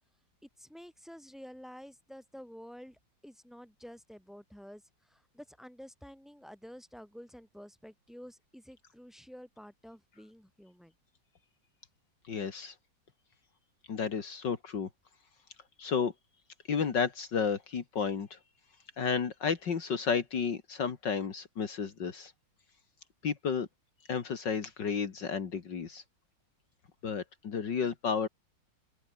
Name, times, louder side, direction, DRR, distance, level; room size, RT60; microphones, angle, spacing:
voice 1, 0.4-10.9, equal, ahead, 6.7 m, -50 dB
voice 2, 12.3-12.7 13.9-14.9 15.8-16.1 16.7-18.4 19.0-22.3 23.2-23.7 24.1-26.0 27.0-28.3, left 6 dB, 70° left, 2.6 m, -32 dB
open air
omnidirectional pair, 2.0 m